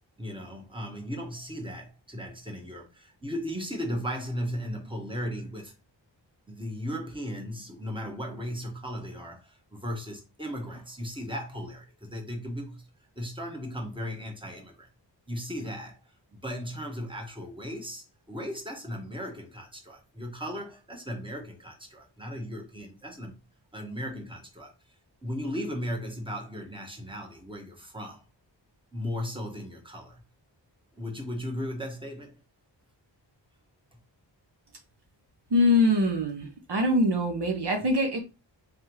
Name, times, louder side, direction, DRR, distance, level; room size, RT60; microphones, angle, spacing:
voice 1, 0.2-5.7 6.5-12.9 13.1-14.9 15.3-16.0 16.3-23.3 23.7-24.7 25.2-28.2 28.9-30.2 30.9-32.4, equal, 10° right, 1.3 m, -36 dB
voice 2, 35.5-38.2, left 1 dB, 65° right, 1.0 m, -23 dB
3.5 x 3.5 x 3.0 m
wide cardioid pair, 60°, 44 cm